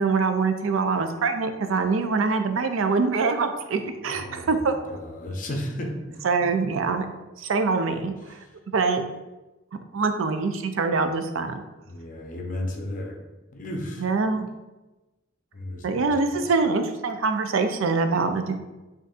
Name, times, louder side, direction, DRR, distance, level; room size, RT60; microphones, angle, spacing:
voice 1, 0.0-4.8 6.2-7.1 7.4-8.1 8.7-9.0 9.9-11.6 14.0-14.5 15.8-18.6, right 4 dB, 80° right, 7 dB, 0.4 m, -24 dB
voice 2, 4.0-6.2 8.3-8.5 11.8-13.2 13.5-14.1 15.5-16.4, left 1 dB, 40° left, 2 dB, 0.7 m, -34 dB
7.7 x 2.6 x 2.5 m, 1.1 s
head